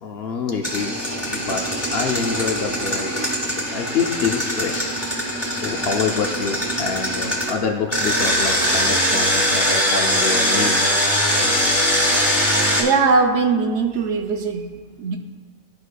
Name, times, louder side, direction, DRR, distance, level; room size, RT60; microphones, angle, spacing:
voice 1, 0.0-4.9 5.2-10.8, left 5 dB, 60° left, 2 dB, 0.7 m, -27 dB
Engine, 0.6-7.5 7.9-12.8, equal, 15° left, 1.6 m, -21 dB
voice 2, 12.8-15.2, right 4 dB, 65° right, 4 dB, 0.8 m, -20 dB
13.0 x 4.7 x 2.2 m, 1.5 s
omnidirectional pair, 1.4 m